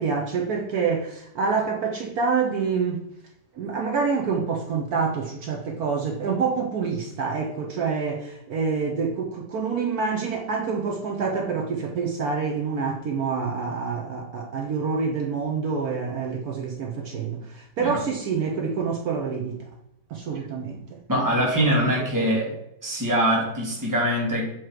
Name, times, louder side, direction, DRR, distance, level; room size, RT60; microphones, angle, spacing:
voice 1, 0.0-3.0 3.5-19.6 20.1-22.4, right 5 dB, 65° right, 1 dB, 1.2 m, -27 dB
voice 2, 21.1-22.5 22.8-24.5, equal, 10° right, -2 dB, 1.5 m, -23 dB
7.5 x 3.1 x 4.5 m, 0.79 s
omnidirectional pair, 1.8 m